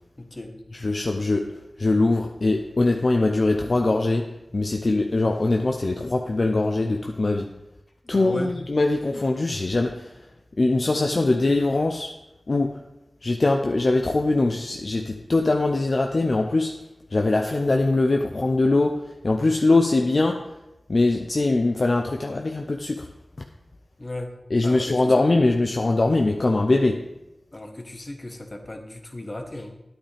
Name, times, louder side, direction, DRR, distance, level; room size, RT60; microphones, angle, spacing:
voice 1, 0.2-0.5 8.0-8.5 24.0-24.3 24.6-24.9 25.3-25.5 27.5-29.7, left 1 dB, 40° left, 4 dB, 1.3 m, -35 dB
voice 2, 0.7-1.5 1.8-7.5 8.1-10.1 10.6-12.1 12.5-12.8 13.2-16.7 17.1-20.5 20.9-23.1 24.5-27.0, left 2 dB, 60° left, 3 dB, 0.6 m, -22 dB
10.0 x 8.7 x 3.4 m, 0.91 s
cardioid pair, 45°, 0 cm